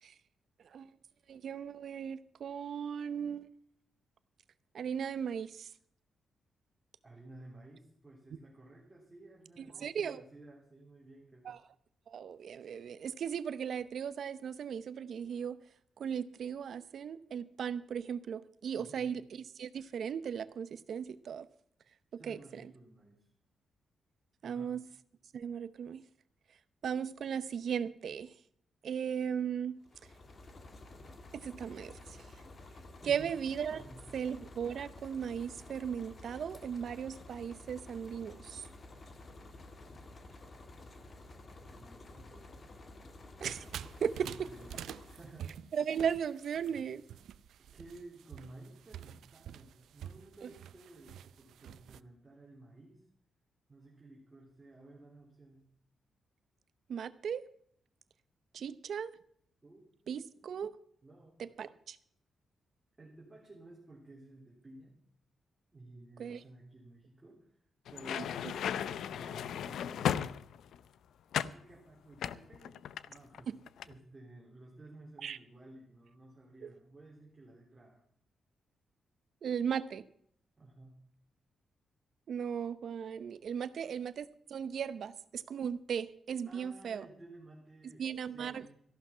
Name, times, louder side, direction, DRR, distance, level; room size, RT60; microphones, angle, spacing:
voice 1, 1.3-3.5 4.7-5.7 9.6-10.2 11.4-11.6 12.1-15.6 16.0-21.5 22.1-22.7 24.4-24.9 25.3-26.0 26.8-28.3 28.8-29.8 31.3-32.3 33.1-33.8 34.1-38.7 43.4-43.6 44.0-44.1 45.7-47.0 50.4-50.5 56.9-57.4 58.5-59.1 60.1-60.7 61.4-62.0 66.2-66.4 73.5-73.6 75.2-75.4 76.6-76.7 79.4-80.0 82.3-87.1 88.0-88.7, right 7 dB, 55° right, 15 dB, 0.8 m, -37 dB
voice 2, 7.0-11.5 18.7-19.2 22.2-23.3 24.4-24.7 33.0-33.3 33.7-34.3 39.7-40.0 41.6-42.5 44.1-45.5 47.7-53.0 53.7-55.7 59.6-60.1 61.0-61.6 63.0-64.9 65.7-67.5 67.9-70.2 71.5-72.8 73.1-73.5 73.8-78.0 80.6-81.0 83.6-83.9 86.4-88.1 88.3-88.8, right 2 dB, 15° right, -5 dB, 3.5 m, -54 dB
sound 1, 29.8-45.6, left 2 dB, 30° left, 1.6 m, -52 dB
sound 2, 43.4-52.0, right 10 dB, 90° right, 0.4 m, -48 dB
sound 3, 67.9-70.8 71.3-71.6 72.2-73.4 73.7-73.9, left 9 dB, 80° left, 0.5 m, -35 dB
14.5 x 11.5 x 5.7 m, 0.65 s
wide cardioid pair, 165°, 0 cm